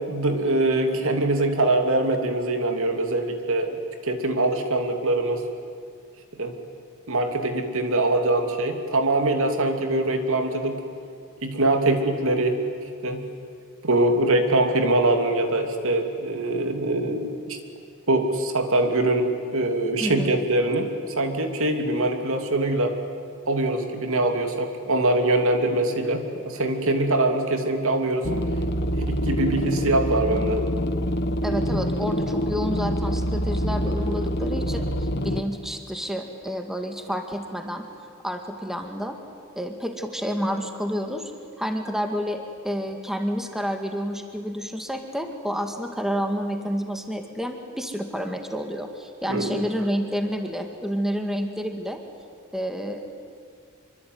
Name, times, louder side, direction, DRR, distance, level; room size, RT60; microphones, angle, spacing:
voice 1, 0.1-5.4 6.4-6.5 7.1-10.8 11.4-12.6 13.0-13.2 13.8-17.6 18.1-22.9 23.5-28.3 29.0-30.6 49.3-49.6, right 2 dB, 65° right, 5 dB, 3.0 m, -23 dB
voice 2, 20.0-20.3 31.4-37.8 38.2-39.2 39.6-41.3 41.6-52.0 52.5-53.1, equal, ahead, 5 dB, 2.1 m, -29 dB
sound 1, 28.2-35.4, equal, 50° left, 1.5 m, -26 dB
26.0 x 24.0 x 9.5 m, 2.2 s
head